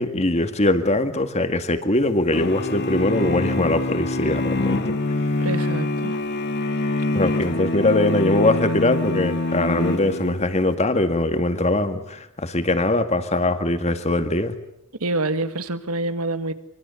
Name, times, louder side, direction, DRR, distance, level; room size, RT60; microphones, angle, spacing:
voice 1, 0.0-5.0 7.1-14.5, left 2 dB, 30° left, 2.1 m, -22 dB
sound 1, 2.3-10.6, left 2 dB, 50° left, 2.0 m, -25 dB
voice 2, 5.4-6.2 15.0-16.5, right 2 dB, 85° right, 1.9 m, -26 dB
25.0 x 25.0 x 8.4 m
head